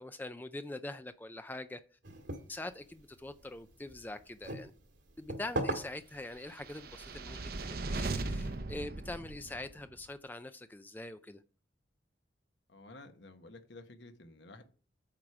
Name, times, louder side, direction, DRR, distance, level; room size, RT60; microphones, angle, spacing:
voice 1, 0.0-1.8 2.5-4.7 5.2-11.4, left 2 dB, 10° left, 0.3 m, -43 dB
sound 1, 2.0-8.6, right 1 dB, 75° right, 1.8 m, -43 dB
sound 2, 6.5-9.9, right 2 dB, 50° right, 0.7 m, -38 dB
voice 2, 12.7-14.6, left 2 dB, 70° left, 1.1 m, -52 dB
8.8 x 4.9 x 5.9 m
head